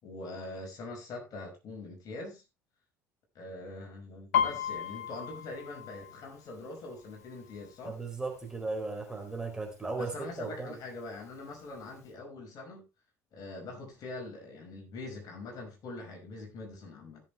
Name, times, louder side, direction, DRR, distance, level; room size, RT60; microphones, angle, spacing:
voice 1, 0.0-2.4 3.3-8.0 10.0-12.8 13.3-17.2, left 2 dB, 50° left, 5.7 m, -43 dB
Piano, 4.3-8.0 8.3-8.7 9.1-9.7 10.3-10.4 10.6-11.7 12.0-12.1, left 8 dB, 80° left, 1.6 m, -34 dB
voice 2, 7.8-10.7, right 3 dB, 10° right, 4.0 m, -36 dB
16.0 x 7.5 x 3.3 m
hypercardioid pair, 60°, 8 cm